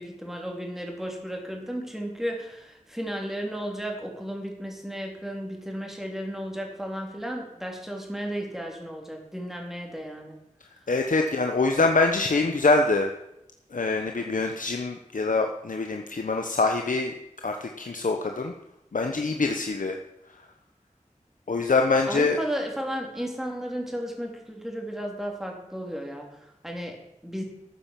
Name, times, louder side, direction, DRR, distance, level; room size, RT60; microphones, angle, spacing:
voice 1, 0.0-10.4 22.1-27.4, equal, 5° right, 0 dB, 3.8 m, -34 dB
voice 2, 10.9-13.1 13.7-17.1 17.4-18.5 18.9-20.0 21.5-22.4, left 3 dB, 80° left, 3 dB, 1.1 m, -24 dB
13.0 x 8.8 x 7.6 m, 0.84 s
wide cardioid pair, 65°, 13 cm